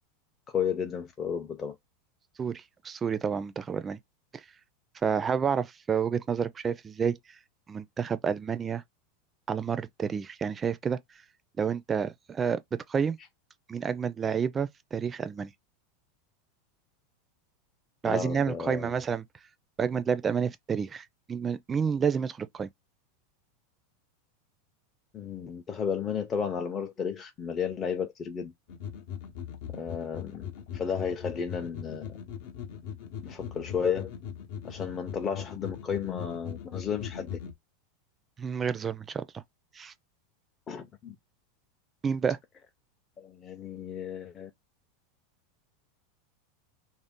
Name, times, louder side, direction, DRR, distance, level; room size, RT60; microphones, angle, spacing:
voice 1, 0.5-1.8 18.0-18.9 25.1-28.5 29.7-32.1 33.2-34.1 34.6-37.3 40.7-41.2 43.2-44.5, left 7 dB, 30° left, 0.5 m, -33 dB
voice 2, 2.4-4.0 4.3-4.4 5.0-7.2 7.7-8.8 9.5-11.0 11.6-12.6 12.9-13.2 13.7-15.5 18.0-19.2 19.8-22.7 38.4-39.4 39.7-39.9 42.0-42.4, right 6 dB, 25° right, 0.4 m, -29 dB
sound 1, 28.7-37.5, left 8 dB, 65° left, 0.8 m, -40 dB
2.6 x 2.0 x 3.6 m
supercardioid pair, 120°, 0 cm